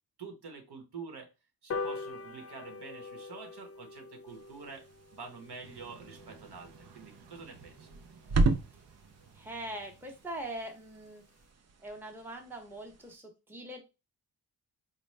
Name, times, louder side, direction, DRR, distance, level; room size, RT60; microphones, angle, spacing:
voice 1, 0.2-1.3 1.6-4.9 5.1-7.9, right 5 dB, 70° right, 4 dB, 1.1 m, -47 dB
sound 1, 1.7-8.4 8.9-9.0 9.3-9.4 9.7-9.8 10.1-10.2 10.4-10.7 11.1-11.2, left 4 dB, 35° left, 0.4 m, -44 dB
sound 2, 4.3-13.2, right 3 dB, 40° right, 0.4 m, -36 dB
sound 3, 5.6-10.7, right 5 dB, 85° right, 0.6 m, -57 dB
voice 2, 9.3-11.2 11.8-13.8, right 1 dB, 5° right, 3 dB, 0.7 m, -42 dB
4.1 x 2.2 x 3.2 m, 0.27 s
wide cardioid pair, 110°, 41 cm